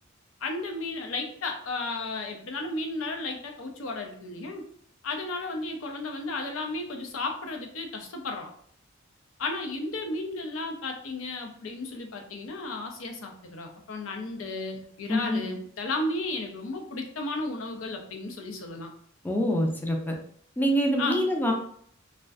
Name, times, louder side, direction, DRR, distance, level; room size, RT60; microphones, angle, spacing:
voice 1, 0.4-4.7 5.0-8.5 9.4-18.9 21.0-21.2, left 2 dB, 90° left, 3 dB, 0.5 m, -34 dB
voice 2, 15.1-15.4 19.2-20.1 20.6-21.5, equal, 10° left, 1 dB, 0.3 m, -25 dB
2.5 x 2.1 x 2.3 m, 0.63 s
head